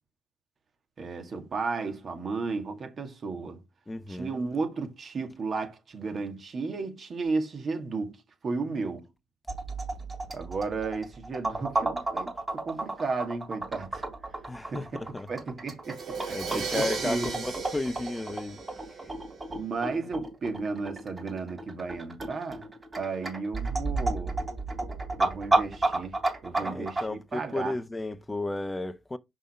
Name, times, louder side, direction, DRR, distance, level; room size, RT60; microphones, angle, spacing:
voice 1, 1.0-3.6 4.1-9.1 10.3-12.3 12.7-14.0 14.6-14.9 15.3-17.4 19.5-22.7 23.0-24.5 25.2-26.2 26.4-27.7, right 4 dB, 45° right, 2.1 m, -34 dB
voice 2, 3.9-4.4 14.4-15.3 16.3-18.8 26.6-29.2, left 2 dB, 15° left, 0.8 m, -33 dB
sound 1, 9.5-27.0, right 2 dB, 25° right, 3.5 m, -31 dB
Crash cymbal, 15.8-19.6, right 5 dB, 65° right, 3.4 m, -36 dB
5.5 x 5.1 x 4.3 m
hypercardioid pair, 55°, 0 cm